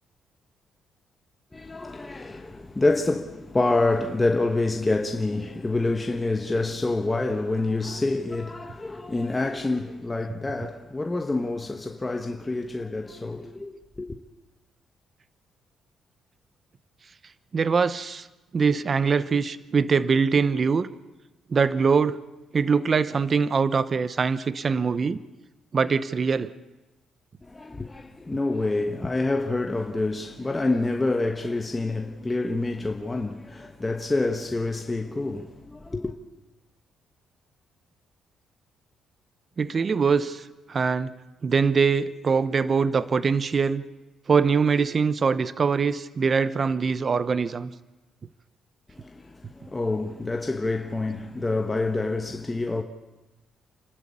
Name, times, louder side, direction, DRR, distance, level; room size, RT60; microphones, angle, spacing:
voice 1, 1.5-14.2 27.5-36.1 49.0-52.8, left 2 dB, 20° left, 1.3 m, -27 dB
voice 2, 17.5-18.3 18.5-20.9 21.5-22.2 22.5-25.2 25.7-26.5 39.6-41.1 41.4-43.8 44.3-47.7, right 5 dB, 40° right, 0.8 m, -23 dB
29.0 x 13.0 x 8.5 m
cardioid pair, 90°, 0 cm